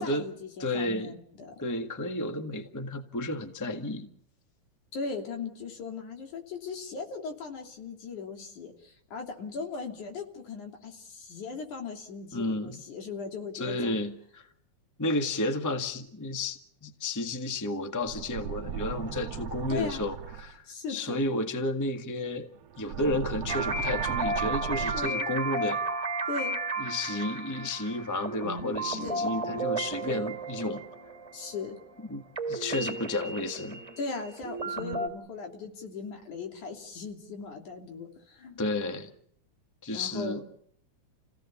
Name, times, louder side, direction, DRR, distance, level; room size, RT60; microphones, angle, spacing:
voice 1, 0.0-1.5 4.9-14.0 19.7-20.0 20.6-21.2 24.9-25.3 26.3-26.6 29.0-29.3 30.0-30.3 31.3-31.8 34.0-38.6 39.9-40.4, left 4 dB, 85° left, 3 dB, 4.5 m, -38 dB
voice 2, 0.6-1.1 1.6-4.1 12.3-12.8 13.5-14.5 15.0-25.8 26.8-30.8 32.1-32.2 32.5-33.8 38.6-39.1 39.8-40.4, left 1 dB, 10° left, 6 dB, 0.9 m, -32 dB
sound 1, 18.0-20.5 22.6-25.1, right 8 dB, 65° right, 1.9 m, -36 dB
sound 2, 23.5-32.0 32.3-35.1, right 2 dB, 10° right, 2.4 m, -33 dB
29.5 x 17.0 x 7.1 m, 0.69 s
omnidirectional pair, 3.4 m